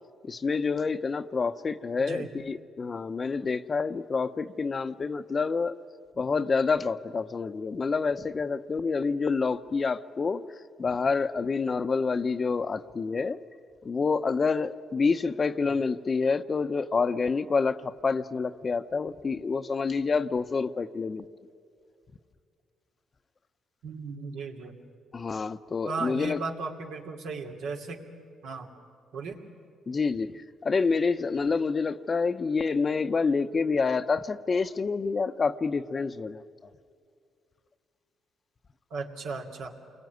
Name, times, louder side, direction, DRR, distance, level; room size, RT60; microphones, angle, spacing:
voice 1, 0.2-5.8 6.2-10.4 10.8-13.4 13.8-21.3 25.1-26.4 29.9-36.4, left 4 dB, 35° left, 0.8 m, -28 dB
voice 2, 2.0-2.3 15.6-15.7 23.8-24.8 25.8-28.0 28.4-28.7 29.1-29.4 38.9-39.7, right 4 dB, 85° right, 2.8 m, -36 dB
28.5 x 22.0 x 9.5 m
cardioid pair, 90°, 0 cm